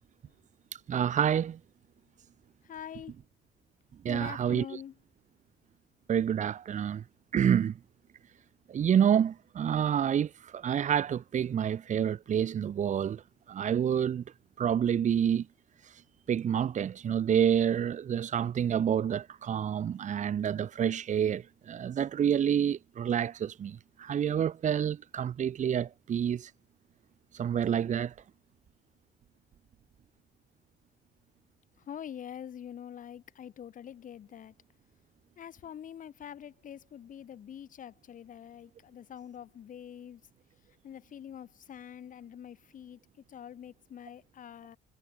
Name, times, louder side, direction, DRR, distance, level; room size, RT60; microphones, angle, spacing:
voice 1, 0.9-1.6 4.0-4.8 6.1-7.0 7.3-7.7 8.7-13.2 13.5-14.2 14.6-15.5 16.3-26.5 27.3-28.1, right 9 dB, 45° right, 2.0 m, -28 dB
voice 2, 2.6-3.1 4.1-4.9 31.9-34.5 35.4-40.2 40.8-43.0 43.3-44.8, left 9 dB, 50° left, 7.5 m, -45 dB
cardioid pair, 110°, 17 cm